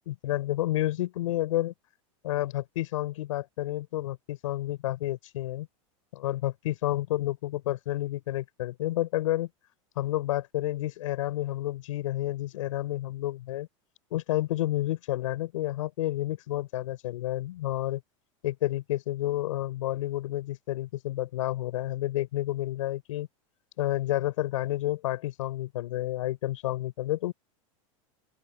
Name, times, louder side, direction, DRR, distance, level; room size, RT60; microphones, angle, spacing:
voice 1, 0.0-1.7 2.2-5.7 6.1-9.5 10.0-13.7 14.1-18.0 18.4-23.3 23.8-27.3, left 15 dB, 80° left, 6.3 m, -30 dB
open air
supercardioid pair, 125°, 17 cm